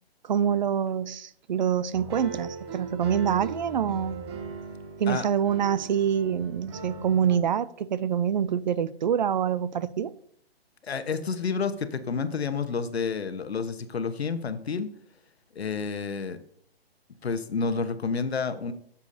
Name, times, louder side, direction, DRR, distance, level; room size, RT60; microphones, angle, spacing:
voice 1, 0.2-4.3 5.0-10.1, right 8 dB, 45° right, 0.5 m, -26 dB
sound 1, 1.9-7.4, right 4 dB, 25° right, 0.9 m, -39 dB
voice 2, 10.8-14.9 15.5-16.4 17.2-18.7, left 5 dB, 80° left, 1.1 m, -29 dB
12.5 x 7.1 x 2.7 m
hypercardioid pair, 150°, 31 cm